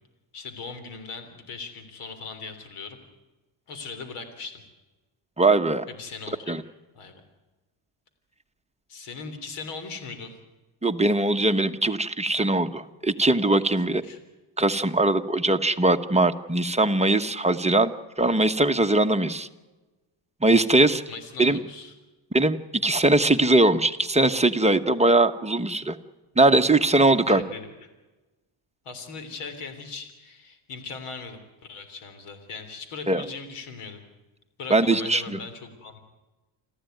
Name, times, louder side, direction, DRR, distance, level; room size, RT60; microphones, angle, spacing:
voice 1, 0.3-3.0 3.7-4.6 5.9-6.5 6.9-7.2 8.9-10.4 13.8-14.2 21.1-21.9 27.3-27.7 28.9-31.4 31.7-34.0 34.6-36.0, left 4 dB, 90° left, 9 dB, 3.5 m, -39 dB
voice 2, 5.4-5.8 6.5-6.6 10.8-14.0 14.6-17.9 18.2-19.5 20.4-21.0 21.4-21.6 22.3-22.6 22.8-26.0 26.4-27.4 33.1-33.2 34.7-35.4, right 2 dB, 15° right, 7 dB, 1.1 m, -21 dB
27.5 x 14.5 x 9.2 m, 1.2 s
cardioid pair, 100°, 49 cm